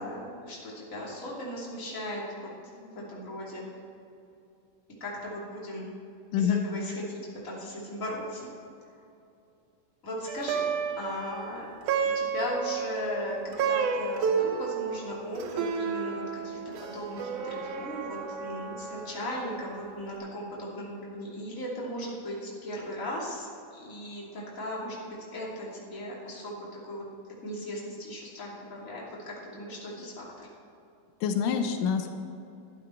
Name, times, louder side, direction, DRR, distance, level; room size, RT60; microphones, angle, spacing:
voice 1, 0.0-3.6 5.0-5.9 6.3-8.5 10.0-10.7 11.0-11.8 12.1-25.0 25.3-27.0 27.4-30.5, left 1 dB, 25° left, -5 dB, 3.0 m, -37 dB
voice 2, 6.3-6.6 31.2-32.1, left 7 dB, 85° left, 6 dB, 2.4 m, -26 dB
Plucked string instrument, 10.3-19.7, right 6 dB, 75° right, 2.2 m, -32 dB
12.5 x 11.5 x 4.5 m, 2.7 s
omnidirectional pair, 3.7 m